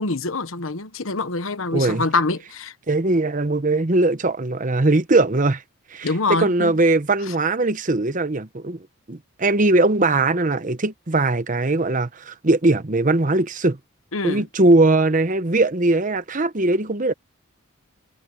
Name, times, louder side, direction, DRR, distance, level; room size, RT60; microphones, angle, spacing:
voice 1, 0.0-2.7 6.0-6.7 7.3-7.4 14.1-14.4, left 3 dB, 75° left, 1.3 m, -25 dB
voice 2, 1.7-2.0 2.9-5.6 5.9-8.8 9.1-13.8 14.2-17.1, right 2 dB, 40° right, 1.0 m, -20 dB
head